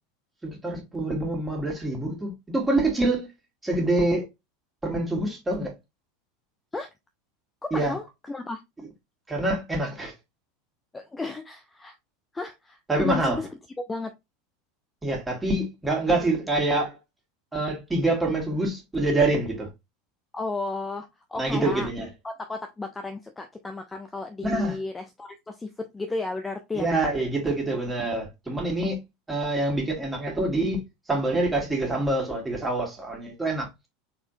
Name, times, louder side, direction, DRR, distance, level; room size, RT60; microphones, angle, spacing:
voice 1, 0.4-3.3 3.6-4.3 4.8-5.7 7.7-7.9 9.3-10.1 12.9-13.4 15.0-17.0 17.5-19.7 21.4-22.1 24.4-24.8 26.7-29.0 29.3-30.8 31.1-33.7, right 2 dB, 10° right, 2.2 m, -26 dB
voice 2, 7.6-8.6 10.9-12.0 12.3-13.5 13.8-14.1 20.3-21.9 22.2-26.9, left 3 dB, 15° left, 0.6 m, -33 dB
4.3 x 4.2 x 2.7 m
figure-of-eight pair, 80°, 0 cm